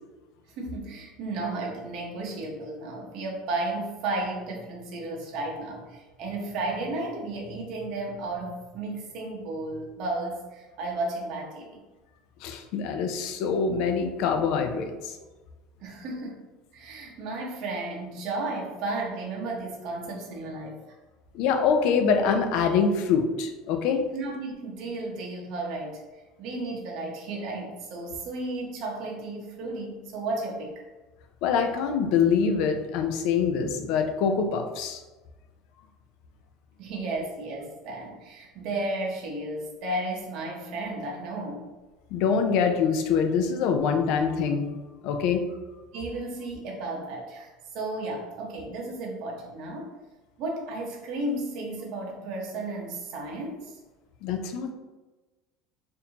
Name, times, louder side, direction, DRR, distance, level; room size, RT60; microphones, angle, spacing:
voice 1, 0.6-11.8 15.8-16.4 16.7-20.8 24.1-26.0 26.4-30.7 36.8-41.7 45.9-49.9 50.4-53.8, right 2 dB, 50° right, -1 dB, 0.8 m, -33 dB
voice 2, 12.4-15.1 21.3-24.0 31.4-35.0 42.1-44.7 45.0-45.4 54.2-54.7, left 6 dB, 55° left, 6 dB, 0.4 m, -24 dB
4.2 x 2.6 x 2.8 m, 1.2 s
cardioid pair, 160°, 0 cm